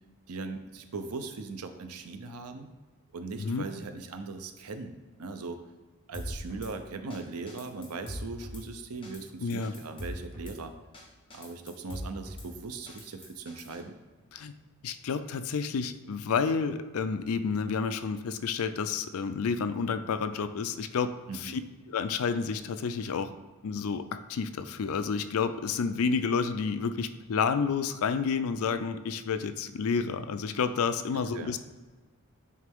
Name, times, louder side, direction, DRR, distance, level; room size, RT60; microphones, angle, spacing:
voice 1, 0.3-2.7 3.1-5.6 6.1-10.8 11.3-14.0 21.3-21.7 31.1-31.5, right 3 dB, 90° right, 8 dB, 0.6 m, -39 dB
Drum kit / Snare drum, 6.1-6.7 7.1-7.2 7.5-8.6 9.0-9.2 9.5-10.6 10.9-11.0 11.3-12.5 12.9-13.8, equal, 25° left, 1.1 m, -41 dB
voice 2, 9.4-9.7 14.3-14.5 14.8-21.6 21.9-23.3 23.6-31.6, left 5 dB, 75° left, 10 dB, 0.4 m, -30 dB
9.4 x 3.3 x 3.6 m, 1.3 s
head